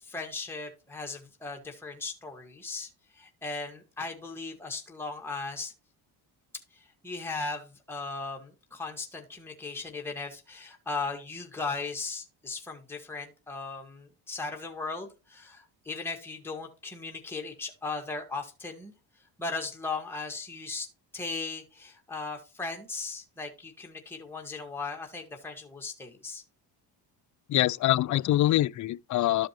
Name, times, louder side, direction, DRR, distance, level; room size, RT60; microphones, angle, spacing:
voice 1, 0.0-5.7 6.7-18.9 19.4-20.9 21.1-26.4, left 3 dB, 5° left, 1.8 m, -37 dB
voice 2, 27.5-29.5, left 14 dB, 40° left, 0.4 m, -24 dB
12.5 x 5.1 x 3.1 m
cardioid pair, 80°, 47 cm